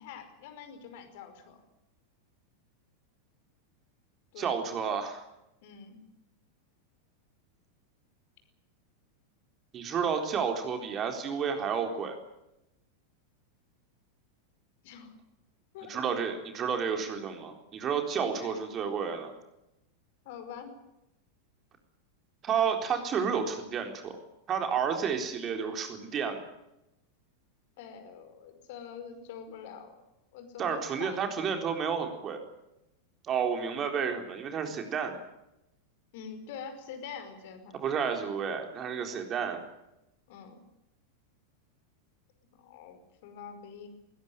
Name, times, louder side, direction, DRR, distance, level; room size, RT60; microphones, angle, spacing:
voice 1, 0.0-1.6 4.3-4.6 5.6-6.0 14.8-15.1 15.7-16.0 18.1-18.6 20.3-20.7 27.8-30.0 30.3-31.5 36.1-37.8 40.3-40.6 42.6-43.9, left 7 dB, 50° left, 8 dB, 5.0 m, -45 dB
voice 2, 4.4-5.2 9.7-12.2 15.9-19.3 22.4-24.2 24.5-26.4 30.6-32.4 33.2-35.2 37.8-39.6, right 6 dB, 30° right, 5 dB, 4.0 m, -31 dB
21.0 x 19.0 x 9.2 m, 0.88 s
figure-of-eight pair, 90°, 0 cm